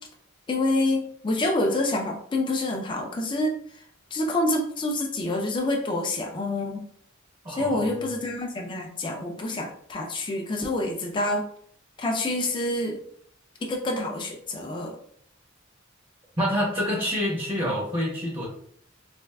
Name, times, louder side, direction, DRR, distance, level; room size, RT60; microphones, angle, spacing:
voice 1, 0.5-3.8 4.1-6.9 7.5-11.5 12.0-13.0 13.6-14.9, left 2 dB, 25° left, 1 dB, 0.4 m, -27 dB
voice 2, 7.4-8.1 16.4-18.5, equal, 25° right, -3 dB, 0.7 m, -27 dB
3.4 x 2.4 x 2.2 m, 0.63 s
head